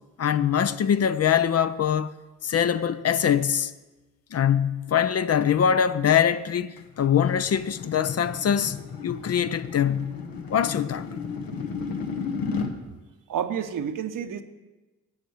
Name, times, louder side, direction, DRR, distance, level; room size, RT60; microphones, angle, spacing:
voice 1, 0.2-2.1 2.4-3.7 4.3-10.2 10.5-11.1, left 8 dB, 45° left, 0.5 m, -23 dB
sound 1, 6.8-12.8, left 5 dB, 75° left, 1.1 m, -34 dB
voice 2, 13.3-14.4, right 8 dB, 65° right, 0.8 m, -29 dB
9.6 x 5.6 x 7.9 m
supercardioid pair, 45°, 36 cm